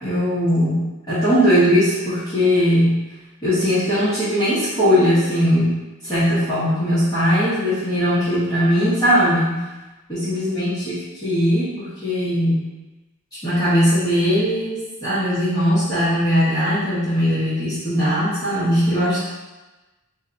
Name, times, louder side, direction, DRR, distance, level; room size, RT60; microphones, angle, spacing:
voice 1, 0.0-3.0 3.4-5.8 6.0-9.5 10.1-12.6 13.4-19.2, equal, 20° left, -15 dB, 0.9 m, -19 dB
2.7 x 2.3 x 3.8 m, 1.1 s
head